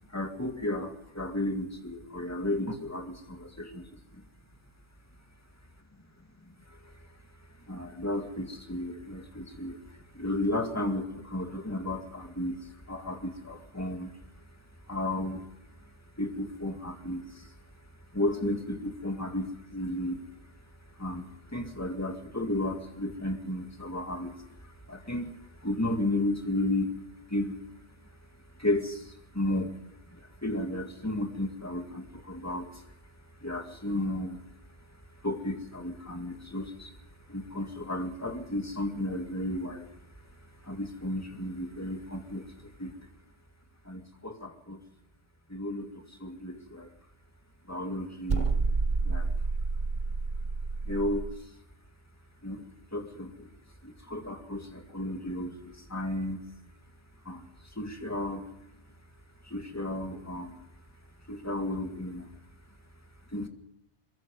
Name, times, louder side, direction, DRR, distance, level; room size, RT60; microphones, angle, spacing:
voice 1, 0.1-3.9 4.1-4.2 6.4-6.9 7.7-14.1 14.9-15.5 16.2-17.6 18.1-20.2 21.0-26.9 27.3-27.6 28.6-29.8 30.1-32.8 33.4-34.4 35.2-37.0 37.3-39.9 40.6-43.0 43.9-44.8 45.5-46.9 47.7-48.5 49.0-49.3 50.9-51.3 52.4-53.5 53.8-56.4 57.3-58.5 59.4-60.6 61.3-62.3 63.3-63.5, left 1 dB, 15° left, 4 dB, 2.1 m, -33 dB
sound 1, 48.3-51.4, right 4 dB, 45° right, 1.0 m, -29 dB
22.5 x 22.5 x 5.4 m, 0.79 s
omnidirectional pair, 1.2 m